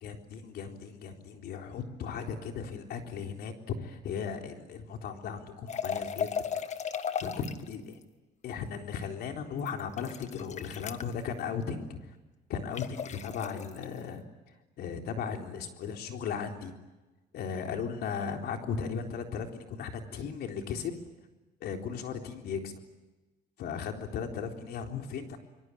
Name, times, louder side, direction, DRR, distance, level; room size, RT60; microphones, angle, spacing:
voice 1, 0.0-6.3 7.2-7.8 8.4-12.1 12.5-14.2 14.8-16.7 17.3-21.0 21.6-22.8 23.6-25.4, left 6 dB, 70° left, 4 dB, 3.9 m, -36 dB
sound 1, 5.7-7.7 9.6-11.1 12.7-13.8, left 7 dB, 45° left, 1.6 m, -35 dB
25.5 x 23.5 x 10.0 m, 1.1 s
cardioid pair, 110°, 17 cm